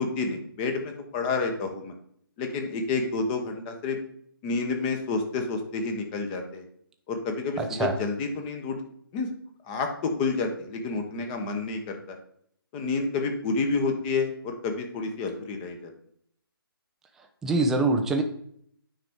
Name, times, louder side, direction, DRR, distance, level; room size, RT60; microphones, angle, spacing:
voice 1, 0.0-1.9 2.4-4.0 4.4-6.6 7.1-8.8 9.1-9.3 9.7-12.2 12.7-15.9, left 4 dB, 20° left, 5 dB, 0.9 m, -29 dB
voice 2, 7.6-7.9 17.4-18.2, right 3 dB, 5° right, 3 dB, 0.3 m, -24 dB
9.1 x 5.0 x 3.6 m, 0.66 s
figure-of-eight pair, 140°, 12 cm